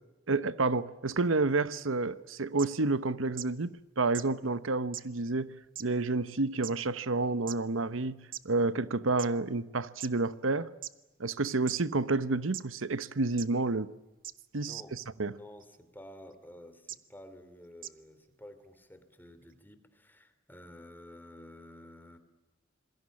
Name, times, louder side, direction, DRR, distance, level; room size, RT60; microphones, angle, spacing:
voice 1, 0.3-8.2 8.4-10.7 11.2-13.9 14.5-15.3, right 3 dB, 80° right, 1.0 m, -30 dB
sound 1, 2.6-2.7 3.4-3.5 4.1-4.3 4.9-5.0 5.8-5.9 6.6-6.7 7.5-7.6 8.3-8.4 9.2-9.3 10.0-10.1 10.8-10.9 11.7-11.8 12.5-12.6 13.4-13.5 14.2-14.3 15.6-15.8 16.9-17.0 17.8-17.9, right 12 dB, 45° right, 1.0 m, -39 dB
voice 2, 14.6-22.2, left 1 dB, 10° left, 3.0 m, -52 dB
27.5 x 21.5 x 8.6 m
head